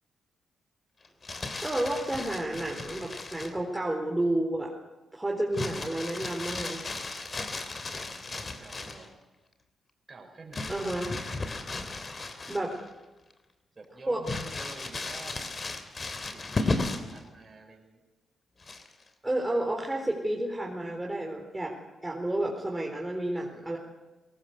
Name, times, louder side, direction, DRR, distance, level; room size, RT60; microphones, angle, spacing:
Crumpling crinkling, 1.0-3.6 5.5-9.1 10.5-12.9 13.3-13.4 14.2-17.2 18.6-19.1, left 3 dB, 40° left, 3.1 m, -35 dB
voice 1, 1.6-4.7 5.1-6.8 10.7-11.1 12.5-12.7 14.1-14.2 19.2-21.7 22.0-23.8, right 1 dB, 15° right, 0 dB, 4.2 m, -30 dB
voice 2, 7.9-9.1 10.1-10.9 13.7-15.5 16.3-18.0, right 3 dB, 35° right, 0 dB, 5.9 m, -49 dB
21.5 x 19.0 x 8.1 m, 1.1 s
hypercardioid pair, 45°, 0 cm